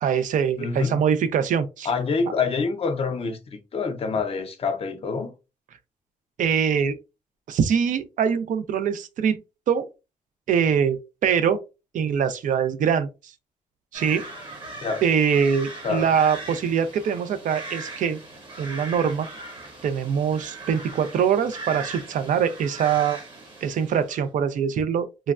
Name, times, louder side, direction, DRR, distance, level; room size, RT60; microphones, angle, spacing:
voice 1, 0.0-1.9 6.4-7.0 7.5-9.4 9.7-9.9 10.5-11.6 11.9-13.1 13.9-14.2 15.0-18.2 18.6-19.3 19.8-23.2 23.6-25.3, right 7 dB, 70° right, 0.4 m, -23 dB
voice 2, 0.6-1.0 1.8-5.3 14.8-15.0 15.8-16.0, left 5 dB, 45° left, 0.6 m, -26 dB
sound 1, 13.9-24.3, right 2 dB, 35° right, 1.0 m, -39 dB
3.1 x 2.2 x 2.4 m
wide cardioid pair, 135°, 14 cm